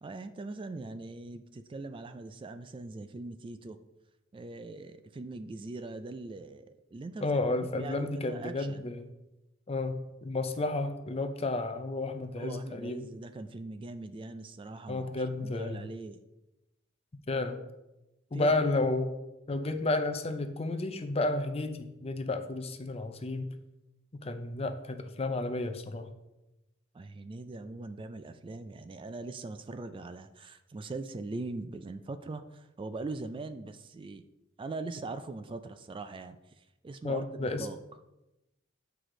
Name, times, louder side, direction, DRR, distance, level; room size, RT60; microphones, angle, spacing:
voice 1, 0.0-3.8 4.3-7.3 7.6-8.9 12.4-15.0 15.4-16.2 18.3-18.6 26.9-34.2 34.6-37.8, right 3 dB, 25° right, 11 dB, 0.3 m, -41 dB
voice 2, 7.2-9.1 9.7-13.1 14.9-15.8 17.3-17.6 18.3-19.2 19.5-23.5 24.2-26.1 37.0-37.7, left 2 dB, 30° left, 8 dB, 0.6 m, -32 dB
8.0 x 4.7 x 3.8 m, 0.96 s
head